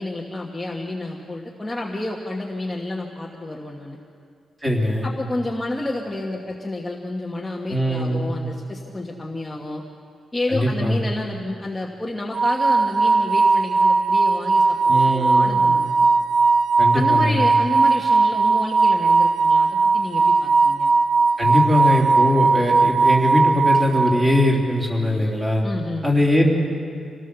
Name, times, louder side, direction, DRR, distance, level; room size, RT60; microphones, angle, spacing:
voice 1, 0.0-4.0 5.0-9.8 10.3-15.9 16.9-20.9 25.6-26.1, left 2 dB, 10° left, -2 dB, 1.3 m, -30 dB
voice 2, 4.6-5.1 7.7-8.3 10.5-11.0 14.9-15.6 16.8-17.4 21.4-25.6 26.0-26.5, left 1 dB, 15° right, -2 dB, 3.2 m, -21 dB
sound 1, 12.3-24.6, right 4 dB, 55° right, 0.5 m, -18 dB
27.0 x 17.5 x 6.8 m, 2.3 s
wide cardioid pair, 175°, 0 cm